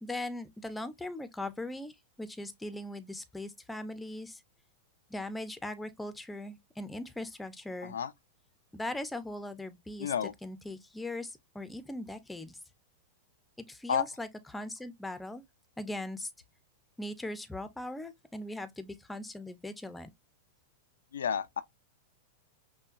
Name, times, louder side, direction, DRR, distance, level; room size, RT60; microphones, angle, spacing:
voice 1, 0.0-4.4 5.1-7.9 8.7-10.1 10.4-12.6 13.6-15.4 15.8-16.3 17.0-20.1, left 1 dB, 5° left, 0.6 m, -40 dB
voice 2, 7.8-8.1 10.0-10.3 13.9-14.0 21.1-21.6, left 8 dB, 90° left, 0.4 m, -31 dB
5.5 x 2.2 x 2.4 m
hypercardioid pair, 120°, 0 cm